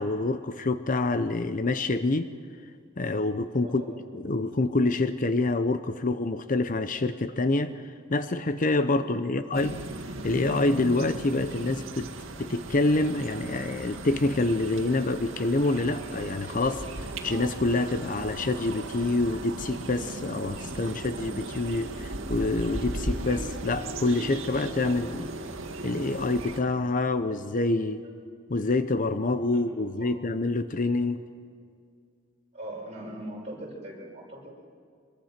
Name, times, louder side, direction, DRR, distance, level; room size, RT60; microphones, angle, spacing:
voice 1, 0.0-2.3 3.0-3.8 4.1-7.8 8.1-9.8 10.2-12.1 12.4-25.3 25.8-28.0 28.5-31.2, left 2 dB, 40° left, 11 dB, 0.7 m, -27 dB
voice 2, 3.6-3.9 24.9-25.0 28.0-28.1 29.5-30.1 32.5-34.5, right 1 dB, 35° right, -3 dB, 6.3 m, -41 dB
sound 1, 9.5-26.6, right 2 dB, 85° right, 2.0 m, -37 dB
25.0 x 22.5 x 6.0 m, 2.2 s
head